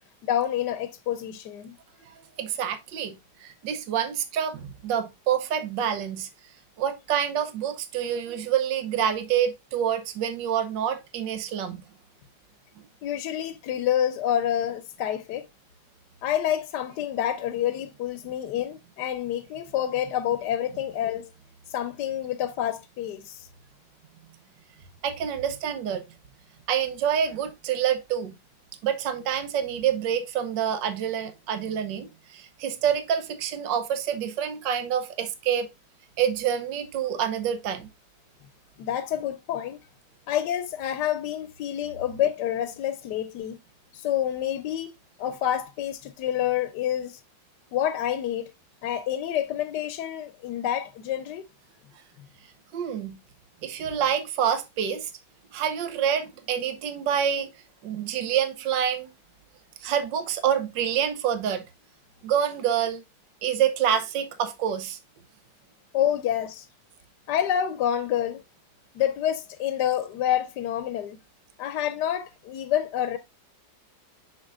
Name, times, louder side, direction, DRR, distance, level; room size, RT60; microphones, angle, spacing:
voice 1, 0.3-1.8 13.0-15.5 16.2-21.3 21.7-23.5 38.8-39.8 40.3-43.6 43.9-44.9 45.2-47.2 47.7-48.5 48.8-51.4 65.9-66.7 67.3-68.4 68.9-71.2 71.6-73.2, left 10 dB, 70° left, 1.2 m, -28 dB
voice 2, 2.4-6.3 6.8-11.8 25.0-26.0 26.7-28.3 28.8-35.7 36.2-37.9 52.7-53.2 53.6-55.1 55.5-57.5 57.8-59.1 59.8-61.6 62.2-63.0 63.4-65.0, right 9 dB, 80° right, 1.5 m, -27 dB
6.5 x 6.4 x 2.4 m
omnidirectional pair, 2.0 m